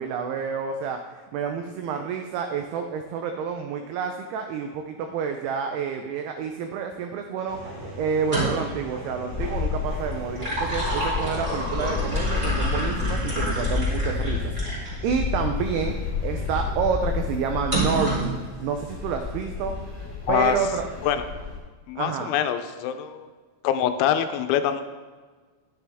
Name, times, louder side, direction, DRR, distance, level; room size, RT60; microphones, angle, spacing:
voice 1, 0.0-7.6 8.0-15.9 16.2-19.7 20.3-20.8 22.0-22.3, right 6 dB, 85° right, 5 dB, 2.3 m, -29 dB
sound 1, 7.5-12.5, right 1 dB, 50° right, 2.6 m, -38 dB
sound 2, 8.1-8.8 10.1-15.0 15.6-15.7 17.7-18.4, right 1 dB, 15° right, 2.4 m, -29 dB
sound 3, 9.3-21.6, left 5 dB, 20° left, 3.1 m, -30 dB
voice 2, 21.9-23.3 23.6-24.8, left 10 dB, 85° left, 9 dB, 3.0 m, -24 dB
10.0 x 9.9 x 3.5 m, 1.4 s
omnidirectional pair, 5.3 m